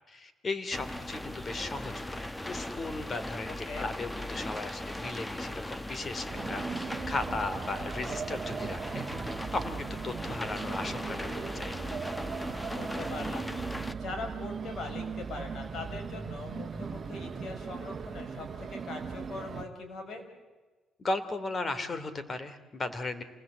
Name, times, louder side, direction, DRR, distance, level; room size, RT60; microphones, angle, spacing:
voice 1, 0.1-9.0 9.5-11.8 21.0-23.2, left 2 dB, 35° left, 12 dB, 2.8 m, -36 dB
sound 1, 0.7-13.9, left 1 dB, 10° left, 1.2 m, -38 dB
voice 2, 3.5-3.9 12.7-13.5 14.0-20.3, left 3 dB, 60° left, 5 dB, 6.2 m, -41 dB
sound 2, 6.3-19.6, right 5 dB, 40° right, 1.5 m, -38 dB
28.0 x 20.0 x 8.0 m, 1.3 s
cardioid pair, 90°, 0 cm